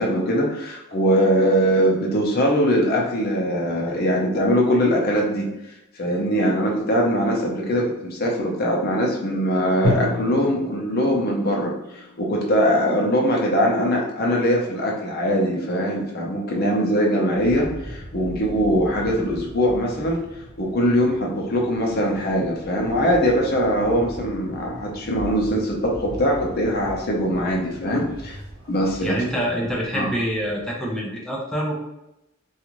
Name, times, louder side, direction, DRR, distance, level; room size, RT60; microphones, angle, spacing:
voice 1, 0.0-5.5 6.0-20.2 20.6-28.4 28.7-29.2 29.6-29.7 29.9-30.1, equal, 50° left, -1 dB, 0.6 m, -22 dB
Drum, 9.8-13.6, left 1 dB, 75° right, 0.9 m, -30 dB
sound 1, 17.3-30.7, equal, 50° right, 1.1 m, -40 dB
voice 2, 29.0-31.7, equal, 5° left, -4 dB, 0.5 m, -26 dB
2.4 x 2.4 x 2.9 m, 0.88 s
head